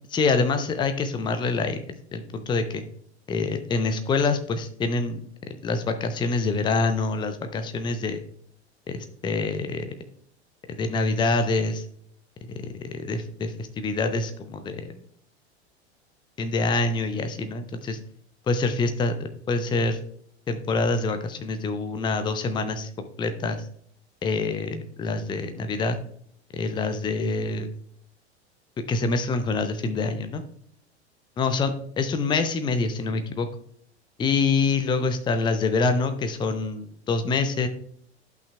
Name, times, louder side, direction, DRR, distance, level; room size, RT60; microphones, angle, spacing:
voice 1, 0.1-2.8 3.3-5.2 5.6-8.2 8.9-9.9 10.8-11.8 12.8-14.9 16.4-18.0 18.5-20.0 20.5-23.6 24.2-26.0 26.5-27.7 28.9-30.4 31.4-31.7 32.0-33.5 34.2-37.7, left 3 dB, 15° left, 8 dB, 0.6 m, -26 dB
11.5 x 5.6 x 2.3 m, 0.63 s
figure-of-eight pair, 85°, 34 cm